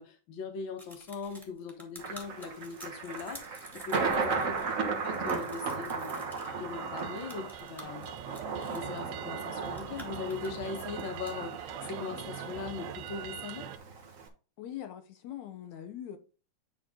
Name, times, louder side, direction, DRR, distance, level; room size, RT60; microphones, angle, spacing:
voice 1, 0.0-8.1 8.7-13.7, left 5 dB, 50° left, 1.8 m, -40 dB
sound 1, 0.8-4.7 5.0-6.5 7.0-9.0 9.5-11.3, equal, ahead, 1.7 m, -50 dB
Thunder, 2.0-14.3, right 4 dB, 55° right, 0.8 m, -36 dB
sound 2, 6.4-13.8, right 12 dB, 75° right, 1.7 m, -44 dB
voice 2, 14.6-16.2, left 11 dB, 80° left, 2.1 m, -42 dB
9.5 x 4.2 x 3.7 m
omnidirectional pair, 3.3 m